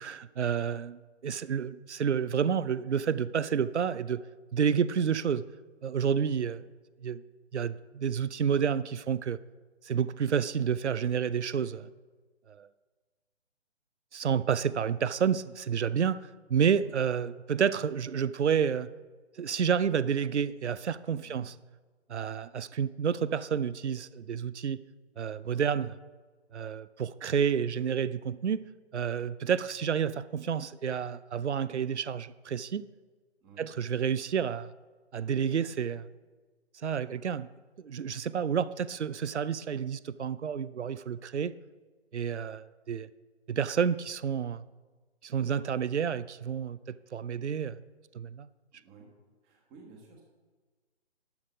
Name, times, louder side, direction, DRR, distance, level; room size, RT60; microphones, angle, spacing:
voice 1, 0.0-4.2 4.5-5.4 5.8-6.6 7.0-7.2 7.5-9.4 9.8-11.9 12.5-12.7 14.1-18.9 19.4-21.5 22.1-24.8 25.2-26.0 26.5-28.6 28.9-32.8 33.6-34.7 35.1-36.1 36.7-37.5 37.8-41.5 42.1-43.1 43.5-44.6 45.2-47.8 48.1-48.5, right 7 dB, 80° right, 17 dB, 0.5 m, -30 dB
voice 2, 33.4-33.7 48.7-49.1 49.4-50.2, right 3 dB, 15° right, 0 dB, 1.4 m, -53 dB
11.5 x 5.9 x 5.1 m, 1.4 s
figure-of-eight pair, 140°, 34 cm